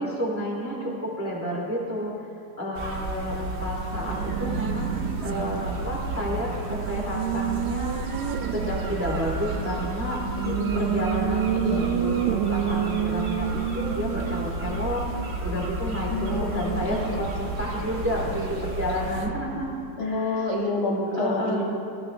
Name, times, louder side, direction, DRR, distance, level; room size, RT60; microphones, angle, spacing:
voice 1, 0.0-10.2 10.7-19.7 20.0-20.5 21.1-21.6, equal, 5° right, -3 dB, 2.1 m, -31 dB
sound 1, 2.8-19.3, right 2 dB, 40° right, 0.9 m, -32 dB
Race car auto racing, 3.9-20.1, right 12 dB, 85° right, 1.7 m, -31 dB
voice 2, 10.4-10.9 11.5-11.9 16.1-17.1 20.0-21.6, left 2 dB, 70° left, -2 dB, 3.2 m, -28 dB
23.0 x 15.5 x 3.3 m, 2.6 s
omnidirectional pair, 3.8 m